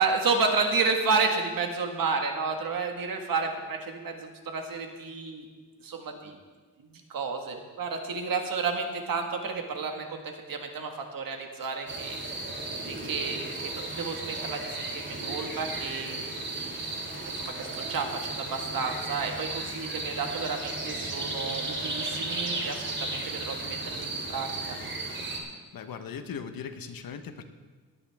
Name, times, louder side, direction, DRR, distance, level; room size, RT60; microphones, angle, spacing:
voice 1, 0.0-5.5 5.8-6.4 6.8-12.2 12.9-16.3 17.4-24.8, right 4 dB, 70° right, 3 dB, 1.8 m, -31 dB
sound 1, 11.9-25.4, right 2 dB, 30° right, 2.7 m, -35 dB
voice 2, 25.4-27.4, left 6 dB, 75° left, 8 dB, 1.1 m, -39 dB
17.5 x 11.0 x 3.6 m, 1.4 s
wide cardioid pair, 115°, 36 cm